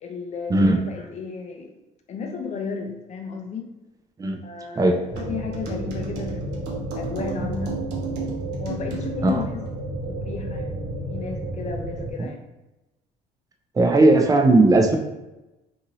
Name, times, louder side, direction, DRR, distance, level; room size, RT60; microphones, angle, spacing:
voice 1, 0.0-1.8 2.1-3.7 4.4-7.8 8.6-9.7 10.1-10.8 11.1-12.4, left 5 dB, 40° left, 3 dB, 0.6 m, -33 dB
sound 1, 5.1-12.1, right 1 dB, 50° right, 1.1 m, -32 dB
sound 2, 5.2-9.4, right 4 dB, 85° right, 0.7 m, -35 dB
voice 2, 13.8-15.0, right 2 dB, 20° right, 4 dB, 0.4 m, -17 dB
2.6 x 2.6 x 2.9 m, 1.0 s
cardioid pair, 110°, 17 cm